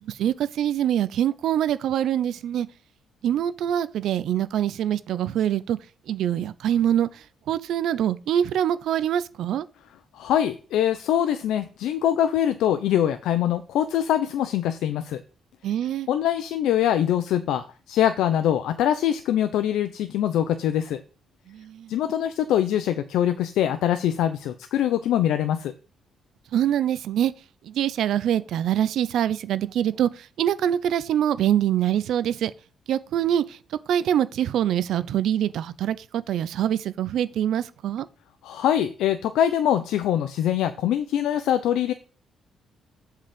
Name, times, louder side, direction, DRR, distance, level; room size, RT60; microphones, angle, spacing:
voice 1, 0.0-2.7 3.2-5.8 6.1-9.7 15.6-16.1 21.5-21.9 26.5-27.3 27.6-32.5 32.9-38.1, right 10 dB, 75° right, 0.6 m, -24 dB
voice 2, 10.1-15.2 16.1-21.0 21.9-25.7 38.4-41.9, left 10 dB, 85° left, 0.6 m, -23 dB
7.5 x 4.8 x 5.1 m
cardioid pair, 90°, 0 cm